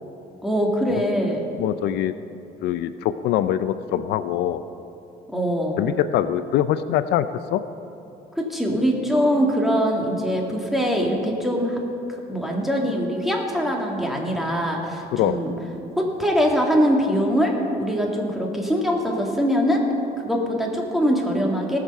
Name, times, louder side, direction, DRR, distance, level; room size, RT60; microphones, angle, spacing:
voice 1, 0.4-1.4 5.3-5.8 8.4-11.8 12.3-15.5 16.0-19.8 20.2-21.8, equal, ahead, 0 dB, 1.9 m, -22 dB
voice 2, 1.6-2.1 2.6-4.6 5.8-7.6 15.1-15.4, left 11 dB, 80° left, 13 dB, 0.4 m, -23 dB
18.5 x 6.5 x 5.5 m, 2.8 s
cardioid pair, 110°, 17 cm